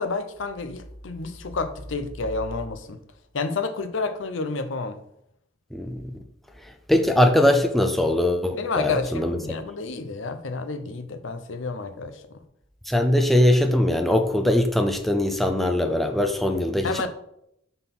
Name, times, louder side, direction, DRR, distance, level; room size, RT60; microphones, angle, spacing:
voice 1, 0.0-3.0 3.3-5.0 8.6-12.4 16.8-17.1, left 3 dB, 70° left, 10 dB, 0.6 m, -30 dB
voice 2, 5.7-6.0 6.9-9.4 12.9-17.1, left 1 dB, ahead, 4 dB, 0.4 m, -21 dB
5.3 x 3.9 x 5.9 m, 0.76 s
head